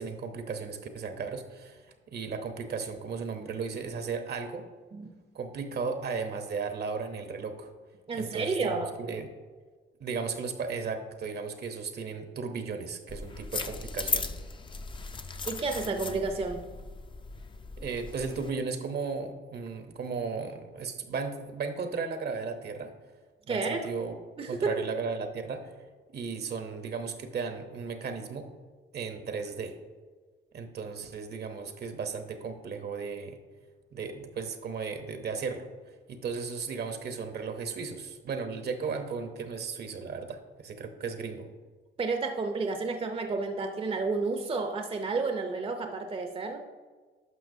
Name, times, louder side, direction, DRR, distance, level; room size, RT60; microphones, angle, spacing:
voice 1, 0.0-4.6 5.3-7.7 8.1-9.3 10.0-14.3 17.8-22.9 23.5-24.2 24.5-25.7 26.1-28.5 28.9-29.7 30.5-33.4 33.9-35.7 36.1-41.5, right 5 dB, 55° right, 7 dB, 0.9 m, -35 dB
voice 2, 8.1-8.9 15.4-16.6 23.5-23.8 24.4-24.8 42.0-46.6, right 3 dB, 30° right, 5 dB, 0.6 m, -31 dB
sound 1, 13.1-18.5, left 4 dB, 25° left, 0.5 m, -37 dB
11.0 x 5.8 x 2.7 m, 1.5 s
cardioid pair, 90°, 20 cm